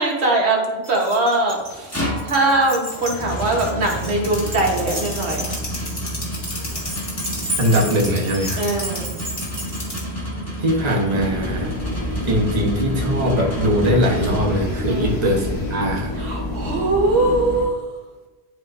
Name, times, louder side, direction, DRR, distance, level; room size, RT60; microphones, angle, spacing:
voice 1, 0.0-5.5 8.6-9.1 14.9-15.2 16.1-17.8, right 2 dB, 85° right, 0 dB, 1.5 m, -21 dB
Keys jangling, 0.8-10.0, right 1 dB, 60° right, 1.7 m, -34 dB
sound 1, 1.6-15.1, equal, 15° left, 1.3 m, -30 dB
sound 2, 4.2-10.1 11.1-17.6, left 1 dB, 55° left, 1.9 m, -29 dB
voice 2, 7.6-8.6 10.6-11.7 12.2-16.1, equal, 40° right, -2 dB, 1.2 m, -21 dB
11.0 x 3.7 x 2.5 m, 1.3 s
omnidirectional pair, 1.1 m